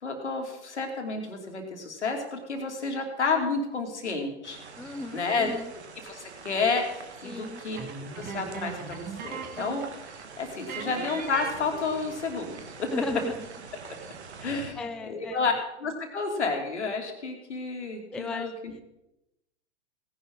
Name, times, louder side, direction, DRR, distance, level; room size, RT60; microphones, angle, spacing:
voice 1, 0.0-4.6 5.1-5.5 6.0-7.8 8.2-9.8 10.4-12.9 14.4-15.5 15.8-18.7, left 4 dB, 80° left, 3 dB, 2.8 m, -30 dB
sound 1, 4.4-14.7, right 5 dB, 70° right, 1.8 m, -45 dB
voice 2, 4.8-5.7 7.2-7.6 12.9-13.5 14.4-15.5 18.1-18.8, left 3 dB, ahead, 8 dB, 0.3 m, -36 dB
sound 2, 7.7-9.9 10.2-10.3 10.7-12.3, right 6 dB, 30° right, 1.7 m, -38 dB
17.5 x 10.5 x 3.8 m, 0.91 s
figure-of-eight pair, 105°, 34 cm